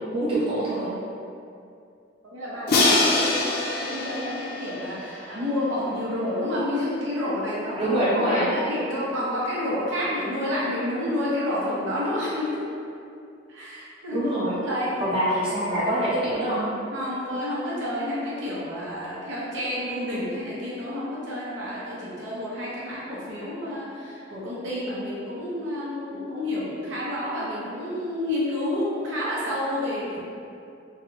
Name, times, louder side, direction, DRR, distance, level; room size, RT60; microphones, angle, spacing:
voice 1, 0.1-0.9 7.8-8.5 14.1-14.6 15.0-16.7, right 1 dB, 30° right, -10 dB, 0.7 m, -24 dB
voice 2, 2.3-12.6 13.5-15.1 16.9-30.2, left 1 dB, 80° right, -8 dB, 0.6 m, -29 dB
Crash cymbal, 2.7-5.6, left 2 dB, 55° left, 0.4 m, -24 dB
2.6 x 2.0 x 2.5 m, 2.5 s
head